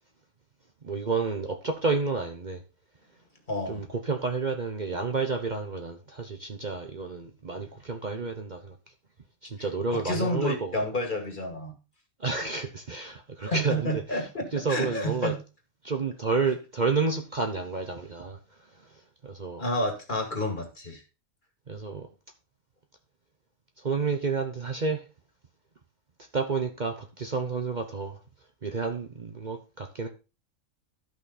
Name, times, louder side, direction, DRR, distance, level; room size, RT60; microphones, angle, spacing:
voice 1, 0.8-2.6 3.7-8.8 9.4-10.7 12.2-14.0 14.5-15.3 15.8-18.4 19.2-19.6 21.7-22.1 23.8-25.0 26.3-28.2 28.6-30.1, right 4 dB, 40° right, 1.0 m, -30 dB
voice 2, 3.5-3.8 9.9-11.8 13.4-15.4 19.6-21.0, left 1 dB, 40° left, 2.3 m, -30 dB
12.5 x 5.7 x 4.1 m
omnidirectional pair, 1.3 m